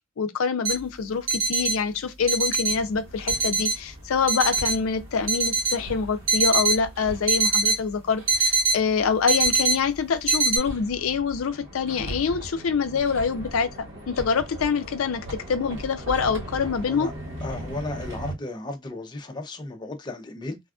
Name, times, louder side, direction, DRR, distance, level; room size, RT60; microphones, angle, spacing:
voice 1, 0.2-17.1, left 5 dB, 80° left, 0.4 m, -25 dB
sound 1, 0.6-0.7 1.3-1.7 2.3-2.7 3.3-3.7 4.3-4.7 5.3-5.7 6.3-6.8 7.3-7.8 8.3-8.8 9.3-9.8 10.3-10.6, right 3 dB, 80° right, 1.3 m, -22 dB
Hammer, 2.7-18.3, right 1 dB, 60° right, 1.0 m, -39 dB
voice 2, 17.4-20.6, left 2 dB, 20° left, 0.5 m, -34 dB
3.3 x 2.3 x 2.4 m
head